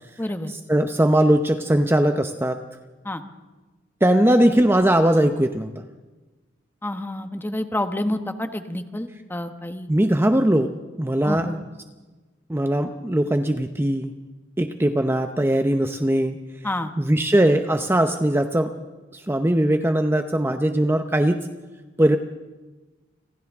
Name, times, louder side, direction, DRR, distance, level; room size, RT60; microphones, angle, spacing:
voice 1, 0.2-0.5 3.0-3.2 6.8-9.9 11.2-11.6 16.6-16.9, left 1 dB, 10° left, 8 dB, 1.1 m, -28 dB
voice 2, 0.7-2.6 4.0-5.7 9.9-10.7 11.0-11.5 12.5-14.1 14.6-16.4 17.0-18.7 19.1-21.5 22.0-22.2, right 1 dB, 10° right, 7 dB, 0.7 m, -20 dB
29.5 x 26.5 x 3.6 m, 1.2 s
head